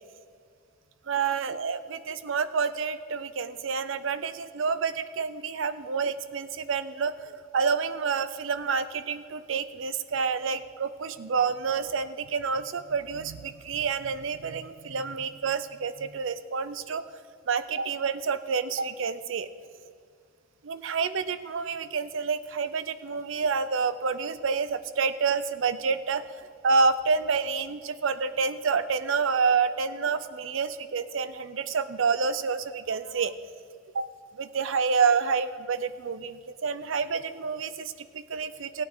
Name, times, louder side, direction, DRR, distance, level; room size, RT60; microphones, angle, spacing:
voice 1, 1.1-17.0 17.5-19.5 20.6-26.2 26.6-33.3 33.9-34.0 34.3-38.8, right 5 dB, 65° right, 13 dB, 0.5 m, -28 dB
16.5 x 9.0 x 3.9 m, 2.2 s
head